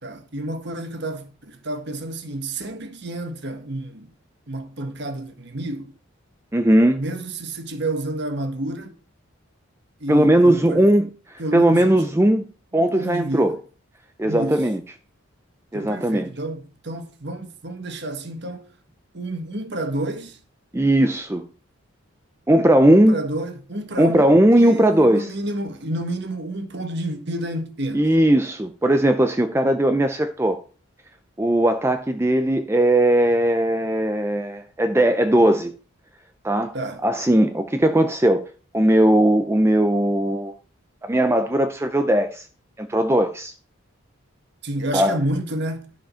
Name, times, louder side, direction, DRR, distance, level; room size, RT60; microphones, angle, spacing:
voice 1, 0.0-4.1 4.5-5.9 7.0-8.9 10.0-10.9 11.4-12.1 12.9-13.6 14.2-14.6 15.7-18.7 19.1-20.4 22.9-28.1 36.7-37.0 44.6-45.8, right 1 dB, 55° right, 1.5 m, -30 dB
voice 2, 6.5-7.0 10.1-12.4 12.7-13.5 14.2-14.8 15.7-16.3 20.7-21.4 22.5-23.2 24.0-25.3 27.9-30.6 31.4-35.7 36.4-36.7 37.0-38.5 38.7-40.5 41.0-42.4 42.8-43.5 44.9-45.2, right 1 dB, 10° right, 0.5 m, -18 dB
12.0 x 5.1 x 5.6 m
head